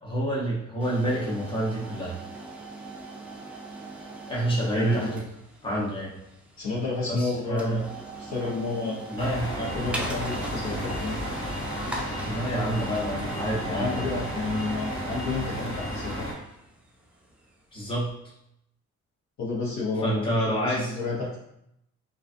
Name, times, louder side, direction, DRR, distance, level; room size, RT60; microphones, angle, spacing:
voice 1, 0.0-2.2 4.3-5.1 5.6-6.1 7.1-7.8 9.1-9.5 12.2-14.1 17.7-18.1 20.0-20.9, right 1 dB, 15° left, -6 dB, 0.9 m, -28 dB
sound 1, 0.8-17.7, right 2 dB, 5° right, 0.4 m, -40 dB
voice 2, 4.7-5.2 6.6-7.8 8.2-9.0 9.6-11.2 13.7-16.3 19.4-21.4, left 3 dB, 65° left, -5 dB, 1.0 m, -31 dB
sound 2, 9.2-16.3, equal, 45° left, 1.2 m, -33 dB
2.4 x 2.3 x 2.5 m, 0.77 s
cardioid pair, 90°, 30 cm